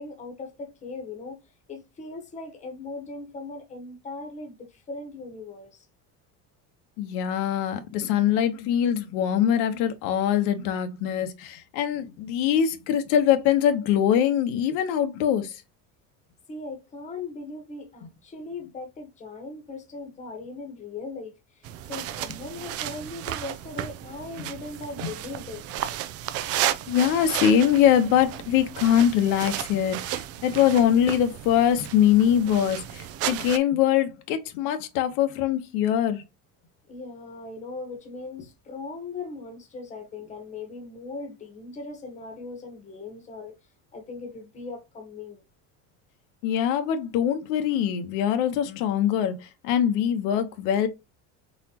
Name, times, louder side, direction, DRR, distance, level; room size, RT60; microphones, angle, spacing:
voice 1, 0.0-1.4 1.7-5.9 16.5-25.6 36.9-43.6 43.9-45.4, left 3 dB, 20° left, 1.2 m, -39 dB
voice 2, 7.0-15.6 24.4-24.5 25.0-25.1 26.9-36.2 46.4-50.9, left 9 dB, 80° left, 1.1 m, -23 dB
sound 1, 21.6-33.6, right 12 dB, 45° right, 0.5 m, -33 dB
4.4 x 4.1 x 2.9 m
cardioid pair, 170°, 35 cm